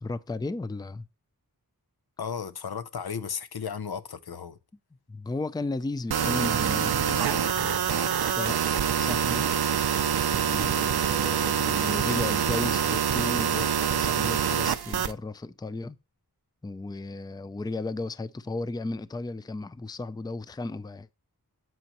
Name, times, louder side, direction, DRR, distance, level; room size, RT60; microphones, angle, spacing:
voice 1, 0.0-1.1 5.1-8.6 9.0-9.5 10.3-16.0 16.6-21.1, left 2 dB, 10° left, 0.4 m, -35 dB
voice 2, 2.2-4.6, left 6 dB, 85° left, 0.6 m, -34 dB
sound 1, 6.1-15.1, right 8 dB, 80° right, 0.5 m, -25 dB
9.3 x 7.6 x 2.9 m
wide cardioid pair, 55°, 37 cm